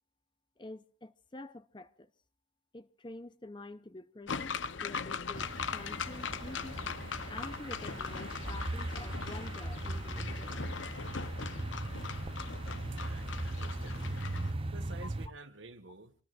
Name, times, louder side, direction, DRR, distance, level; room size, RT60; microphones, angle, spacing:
voice 1, 0.6-2.1 2.7-6.8 7.3-10.7 15.0-15.1, left 2 dB, 25° left, 0.7 m, -48 dB
sound 1, 4.3-14.5, left 5 dB, 85° left, 0.8 m, -40 dB
sound 2, 5.3-15.3, right 2 dB, 30° right, 0.7 m, -39 dB
voice 2, 12.9-14.2 14.7-16.1, right 2 dB, 85° right, 1.6 m, -51 dB
26.5 x 19.5 x 2.5 m
head